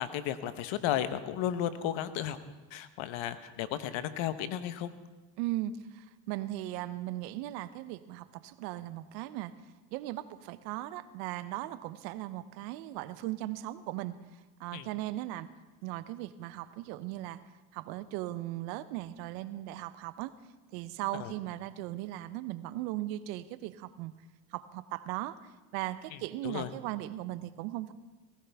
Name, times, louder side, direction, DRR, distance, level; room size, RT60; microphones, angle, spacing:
voice 1, 0.0-2.4 2.7-4.9 14.7-14.9 21.2-21.3 26.1-26.2 26.4-26.7, left 11 dB, 70° left, 12 dB, 1.2 m, -34 dB
voice 2, 5.4-9.5 9.9-14.1 14.6-15.5 15.8-17.4 17.7-20.3 20.7-24.1 24.5-25.4 25.7-27.9, right 15 dB, 85° right, 14 dB, 0.8 m, -38 dB
19.0 x 16.0 x 3.5 m, 1.2 s
supercardioid pair, 75°, 49 cm